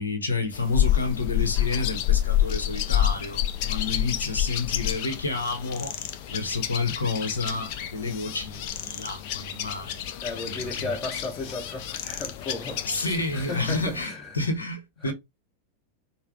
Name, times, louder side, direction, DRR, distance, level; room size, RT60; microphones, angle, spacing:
voice 1, 0.0-6.0 6.3-10.0 10.4-10.9 12.9-15.1, left 3 dB, 75° left, 1.0 m, -30 dB
sound 1, 0.5-14.0, left 12 dB, 45° left, 0.5 m, -29 dB
voice 2, 10.2-14.4 15.0-15.1, left 3 dB, 25° left, 1.5 m, -35 dB
5.6 x 2.2 x 3.6 m
figure-of-eight pair, 90°, 0 cm